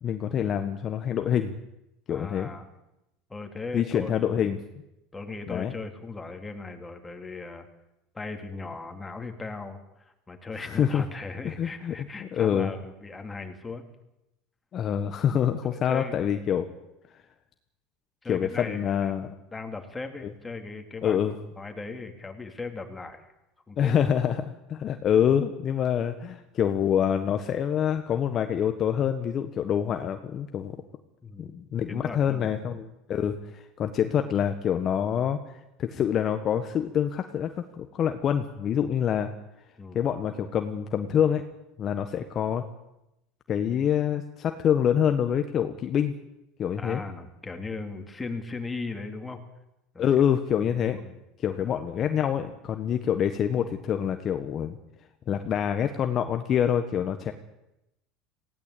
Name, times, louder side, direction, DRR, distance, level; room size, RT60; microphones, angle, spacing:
voice 1, 0.0-1.5 2.1-2.5 3.7-4.6 5.5-5.7 10.6-11.0 11.4-12.7 14.7-16.7 18.3-19.3 21.0-21.3 23.8-30.7 31.4-39.3 39.9-41.4 41.8-42.6 43.5-46.1 46.6-47.0 50.0-51.0 51.4-54.8 55.3-57.3, left 9 dB, 40° left, 7 dB, 1.4 m, -26 dB
voice 2, 2.1-2.7 3.3-4.4 5.1-7.7 8.1-13.8 15.6-16.2 18.2-19.1 19.5-21.3 21.6-23.2 23.7-23.9 31.2-31.5 31.9-32.7 39.8-40.1 46.8-49.4 49.9-50.0 50.5-51.2 51.7-51.8, left 3 dB, 15° left, 5 dB, 3.1 m, -38 dB
18.5 x 17.0 x 8.6 m, 0.88 s
supercardioid pair, 105°, 0 cm